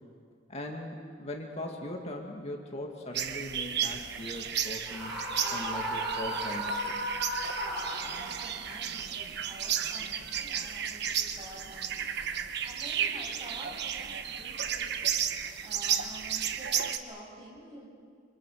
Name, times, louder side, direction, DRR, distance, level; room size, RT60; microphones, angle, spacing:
voice 1, 0.5-5.1 5.5-7.0, left 1 dB, 35° left, 1 dB, 2.1 m, -40 dB
sound 1, 3.1-17.0, right 8 dB, 65° right, 1.2 m, -33 dB
Screaming, 4.9-8.5, equal, ahead, 6.3 m, -34 dB
voice 2, 8.0-15.2 15.6-17.9, right 1 dB, 25° right, -2 dB, 7.6 m, -49 dB
26.5 x 26.0 x 6.5 m, 2.2 s
head